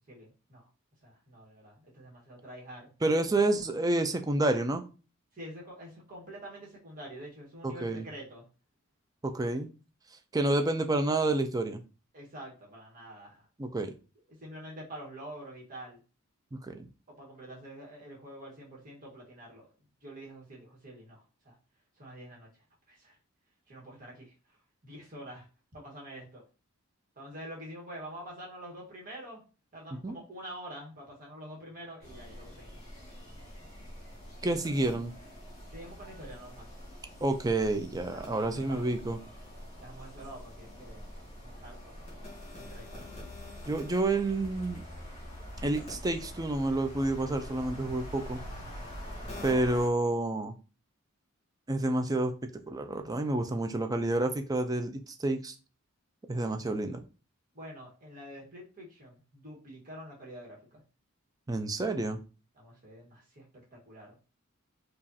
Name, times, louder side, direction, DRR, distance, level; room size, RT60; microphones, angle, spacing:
voice 1, 0.1-0.7 1.0-2.9 5.3-8.5 10.6-10.7 12.1-13.5 14.3-16.0 17.1-19.7 20.0-21.5 22.0-22.5 22.9-23.2 23.7-24.6 24.8-25.5 25.7-26.4 27.2-29.4 29.7-32.8 35.7-36.7 38.1-38.9 39.8-41.0 41.4-42.0 42.5-43.0 57.5-60.8 62.6-64.2, right 1 dB, 40° right, -3 dB, 1.4 m, -47 dB
voice 2, 3.0-4.8 7.6-8.1 9.2-9.7 10.3-11.8 13.6-13.9 16.5-16.9 30.0-30.1 34.4-35.1 37.2-39.2 43.7-44.8 45.6-48.4 49.4-50.5 51.7-52.3 52.7-55.5 56.3-57.0 61.5-62.2, right 2 dB, 15° right, 6 dB, 0.4 m, -29 dB
sound 1, 32.0-49.9, equal, 30° left, 1.8 m, -45 dB
4.9 x 2.5 x 2.7 m, 0.34 s
head